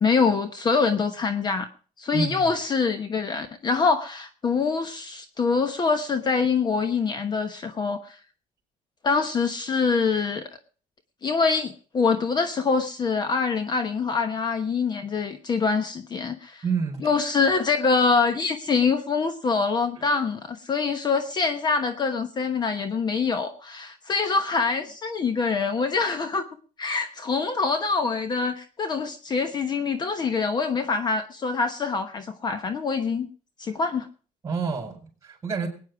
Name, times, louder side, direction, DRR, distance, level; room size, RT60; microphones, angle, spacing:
voice 1, 0.0-1.7 2.0-8.2 9.0-10.4 11.2-16.6 17.0-26.5 26.8-33.3 33.6-34.1, left 4 dB, 30° left, 9 dB, 1.1 m, -25 dB
voice 2, 2.1-2.5 16.6-17.1 20.0-20.1 34.4-35.7, right 5 dB, 25° right, 4 dB, 4.6 m, -28 dB
21.5 x 9.4 x 4.7 m, 0.40 s
cardioid pair, 135°, 13 cm